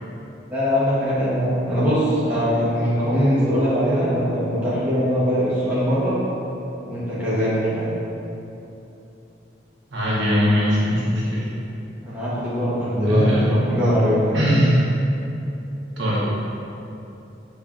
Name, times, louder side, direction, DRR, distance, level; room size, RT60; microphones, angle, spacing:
voice 1, 0.5-6.2 6.8-8.0 12.0-14.5, equal, 10° right, -12 dB, 0.9 m, -21 dB
voice 2, 9.9-11.5 13.1-13.4 14.3-14.8 16.0-16.3, equal, 75° right, -7 dB, 0.9 m, -20 dB
5.4 x 2.6 x 2.4 m, 2.9 s
head